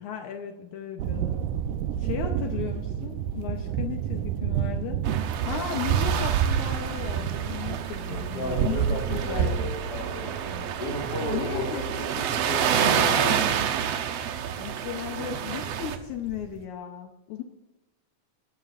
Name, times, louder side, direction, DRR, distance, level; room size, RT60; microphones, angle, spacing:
voice 1, 0.0-1.4 2.0-5.0 5.5-9.7 11.3-11.9 14.6-17.4, left 9 dB, 75° left, 3 dB, 2.2 m, -35 dB
sound 1, 1.0-16.6, right 9 dB, 85° right, 2.1 m, -30 dB
sound 2, 5.0-16.0, right 8 dB, 70° right, 1.7 m, -29 dB
voice 2, 8.3-13.6, left 2 dB, 35° left, -1 dB, 2.6 m, -34 dB
21.5 x 11.5 x 2.5 m, 1.0 s
omnidirectional pair, 3.6 m